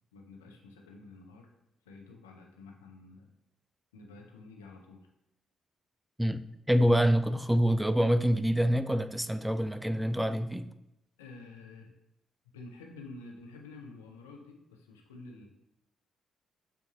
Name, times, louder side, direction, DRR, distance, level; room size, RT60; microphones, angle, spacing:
voice 1, 0.1-1.5 1.8-3.3 3.9-5.1 11.2-12.0 12.5-15.5, left 3 dB, 85° left, 0.5 m, -49 dB
voice 2, 6.2-10.7, equal, 5° right, 0.3 m, -26 dB
7.1 x 2.6 x 2.8 m
hypercardioid pair, 40°, 0 cm